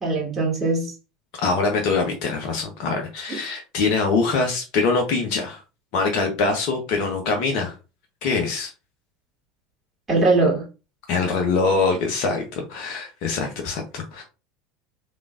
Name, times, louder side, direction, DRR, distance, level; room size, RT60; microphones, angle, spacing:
voice 1, 0.0-0.9 10.1-10.6, right 3 dB, 20° right, 2.2 m, -20 dB
voice 2, 1.4-5.6 5.9-7.7 8.2-8.7 11.1-14.2, left 4 dB, 55° left, 0.9 m, -23 dB
3.6 x 3.6 x 2.5 m
hypercardioid pair, 75°, 0 cm